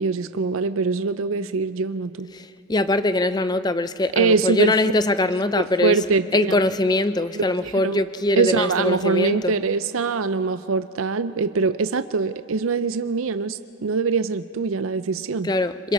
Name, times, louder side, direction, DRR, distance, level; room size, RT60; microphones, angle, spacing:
voice 1, 0.0-2.3 4.1-4.7 5.6-6.6 7.3-7.4 7.8-8.0 8.4-15.5, right 4 dB, 70° right, 12 dB, 0.5 m, -23 dB
voice 2, 2.3-6.0 6.3-9.5 15.4-15.9, left 2 dB, 20° left, 12 dB, 0.5 m, -22 dB
27.0 x 26.0 x 4.3 m, 2.6 s
head